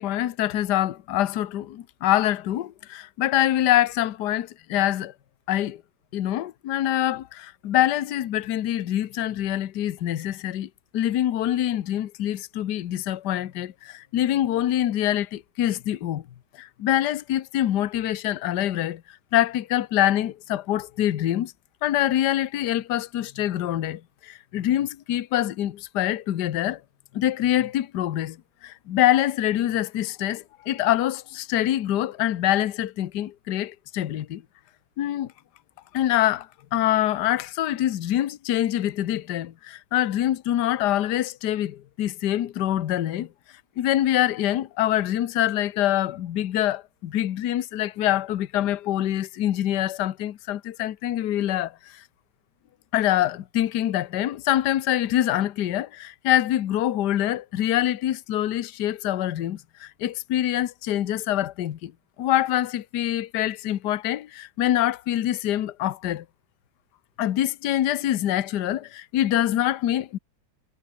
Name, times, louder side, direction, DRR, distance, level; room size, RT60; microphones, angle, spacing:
voice 1, 0.0-5.1 5.5-5.8 6.1-16.2 16.6-19.0 19.3-21.5 21.8-26.8 27.1-28.4 28.6-34.4 35.0-35.3 35.9-43.3 43.8-52.0 52.9-61.9 62.2-66.2 67.2-70.2, left 12 dB, 60° left, 1.4 m, -25 dB
omnidirectional pair, 2.2 m